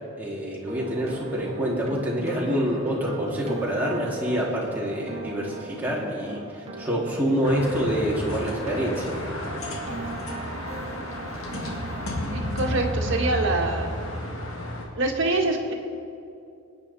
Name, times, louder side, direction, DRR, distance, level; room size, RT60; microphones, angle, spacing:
voice 1, 0.2-9.1, equal, 10° right, -5 dB, 2.5 m, -27 dB
sound 1, 0.7-13.5, right 1 dB, 30° right, 1.5 m, -38 dB
sound 2, 7.4-14.9, equal, 75° left, 2.1 m, -32 dB
voice 2, 12.3-13.9 15.0-15.7, right 2 dB, 60° right, 1 dB, 1.7 m, -25 dB
25.5 x 9.4 x 4.2 m, 2.6 s
head